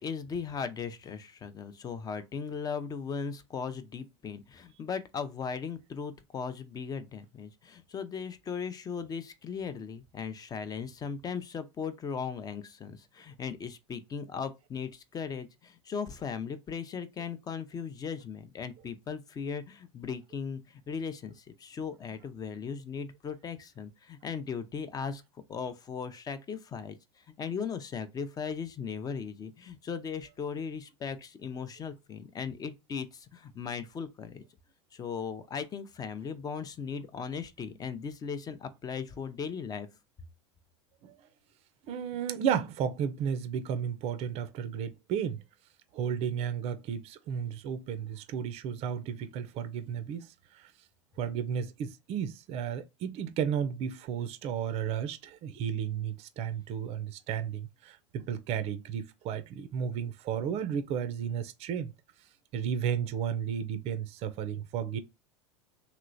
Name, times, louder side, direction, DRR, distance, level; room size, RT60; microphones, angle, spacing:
voice 1, 0.0-25.2 25.5-27.0 27.4-34.4 34.9-39.9, left 6 dB, 25° left, 0.5 m, -37 dB
voice 2, 41.9-45.4 45.9-50.7 51.2-61.9 62.5-65.0, right 8 dB, 45° right, 0.5 m, -33 dB
3.0 x 2.9 x 2.5 m
hypercardioid pair, 95°, 15 cm